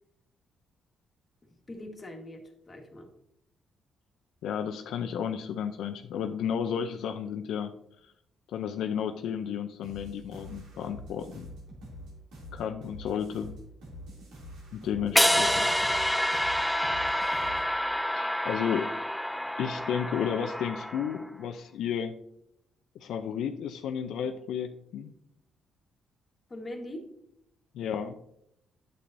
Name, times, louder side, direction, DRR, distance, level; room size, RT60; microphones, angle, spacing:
voice 1, 1.7-3.1 15.1-16.5 26.5-27.0, left 1 dB, 30° left, 2 dB, 1.5 m, -42 dB
voice 2, 4.4-7.8 8.5-11.5 12.5-13.5 14.7-15.5 18.2-18.9 19.6-22.1 23.0-25.1 27.7-28.2, left 8 dB, 80° left, 7 dB, 0.4 m, -32 dB
sound 1, 9.8-17.7, equal, 85° right, 2.7 m, -46 dB
sound 2, 15.2-21.3, equal, 5° left, 0.3 m, -28 dB
8.5 x 6.8 x 2.6 m, 0.76 s
cardioid pair, 90°, 0 cm